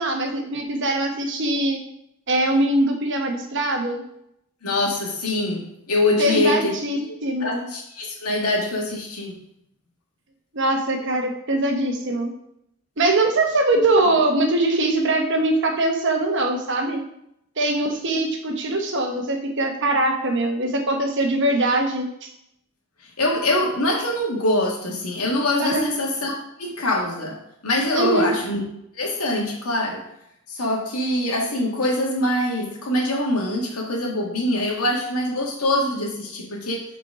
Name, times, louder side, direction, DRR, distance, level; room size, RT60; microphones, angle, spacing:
voice 1, 0.0-1.8 2.3-4.0 6.2-7.7 10.5-12.3 13.0-17.0 17.6-22.3 25.6-25.8 27.9-28.3, right 2 dB, 55° right, 3 dB, 1.1 m, -22 dB
voice 2, 4.6-5.6 5.9-6.7 7.1-7.2 7.4-9.4 23.2-27.4 27.6-28.6 28.9-30.0 30.5-36.8, left 1 dB, 80° left, -1 dB, 1.8 m, -24 dB
6.7 x 4.5 x 4.8 m, 0.77 s
head